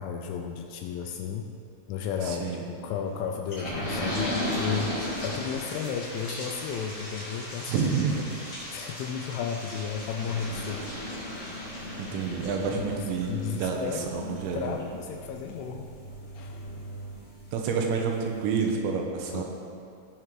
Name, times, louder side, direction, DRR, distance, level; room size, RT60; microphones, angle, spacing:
voice 1, 0.0-1.5 1.9-7.9 8.7-10.9 12.7-12.9 13.3-15.9 16.4-17.0 19.3-19.4, left 7 dB, 80° left, 3 dB, 2.9 m, -34 dB
voice 2, 2.2-2.6 7.7-8.2 12.0-14.8 17.5-19.4, right 5 dB, 80° right, 1 dB, 3.3 m, -29 dB
sound 1, 3.5-17.8 18.2-18.3 18.6-18.7, left 1 dB, 40° left, 3.5 m, -36 dB
16.5 x 6.1 x 3.8 m, 2.4 s
omnidirectional pair, 5.9 m